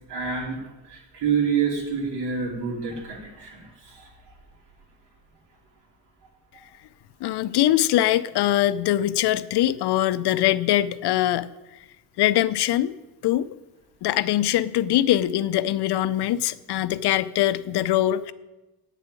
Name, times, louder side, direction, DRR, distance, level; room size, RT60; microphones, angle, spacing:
voice 1, 0.1-0.6 0.8-4.3, right 6 dB, 75° right, -2 dB, 3.5 m, -28 dB
voice 2, 7.2-11.5 12.2-12.9 13.2-13.5 14.0-18.3, left 13 dB, 70° left, 15 dB, 0.6 m, -22 dB
9.4 x 7.0 x 8.9 m, 1.1 s
cardioid pair, 175°, 41 cm